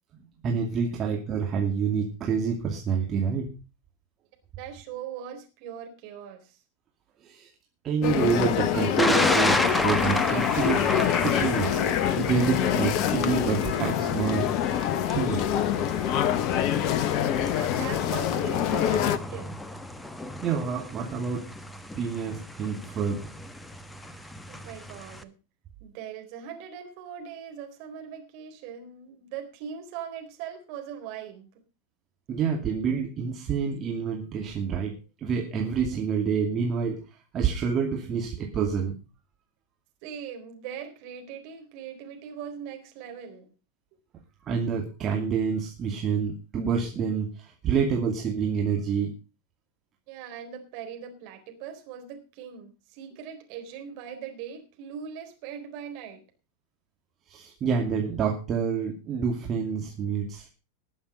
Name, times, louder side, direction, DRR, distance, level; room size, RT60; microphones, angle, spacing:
voice 1, 0.4-3.5 7.2-7.5 7.8-10.9 11.2-11.8 12.2-14.5 14.9-15.5 20.4-21.5 22.0-23.2 32.3-37.0 37.3-39.0 44.4-49.1 57.3-60.5, right 6 dB, 30° right, 1 dB, 2.4 m, -28 dB
voice 2, 4.6-6.6 17.4-19.5 24.2-25.3 25.8-31.5 40.0-43.5 50.1-56.2, right 8 dB, 45° right, 4 dB, 4.0 m, -40 dB
sound 1, 8.0-19.2, left 10 dB, 40° left, 1.0 m, -25 dB
Thunder, 9.0-25.2, left 1 dB, 5° left, 1.1 m, -33 dB
19.5 x 7.1 x 5.2 m, 0.32 s
figure-of-eight pair, 90°, 0 cm